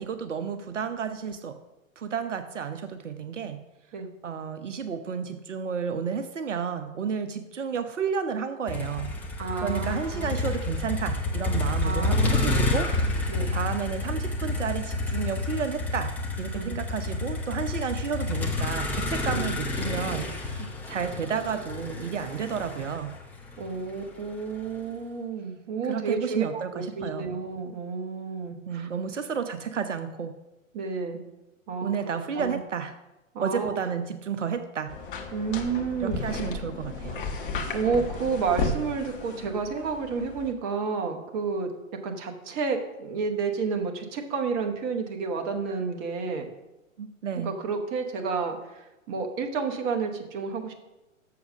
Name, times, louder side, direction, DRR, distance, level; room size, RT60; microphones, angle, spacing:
voice 1, 0.0-1.6 2.0-3.6 4.2-9.1 9.6-12.9 13.2-23.1 25.8-27.3 28.7-30.4 31.8-32.9 33.4-35.0 36.0-37.2 47.0-47.5, right 6 dB, 60° right, 9 dB, 0.8 m, -31 dB
Motor vehicle (road), 8.7-24.8, left 2 dB, 5° left, 0.6 m, -29 dB
voice 2, 9.4-10.4 11.8-12.7 13.3-13.5 16.5-16.8 19.3-19.4 20.6-20.7 23.6-28.9 30.7-31.2 31.7-31.9 32.3-32.6 33.3-33.7 35.3-36.2 37.4-41.7 42.0-46.5 47.4-50.7, right 5 dB, 25° right, 4 dB, 1.0 m, -30 dB
sound 1, 34.9-40.5, left 4 dB, 40° left, 1.2 m, -34 dB
7.1 x 6.5 x 6.2 m, 0.99 s
figure-of-eight pair, 115°, 40 cm